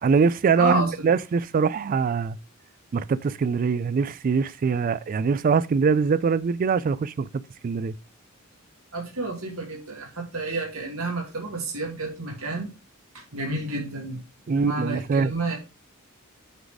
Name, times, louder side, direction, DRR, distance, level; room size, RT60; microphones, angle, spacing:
voice 1, 0.0-2.4 2.9-7.9 14.5-15.3, right 5 dB, 40° right, 0.3 m, -23 dB
voice 2, 0.6-1.1 8.9-12.7 13.1-15.6, right 2 dB, 70° right, 2.4 m, -30 dB
8.0 x 4.0 x 4.8 m
head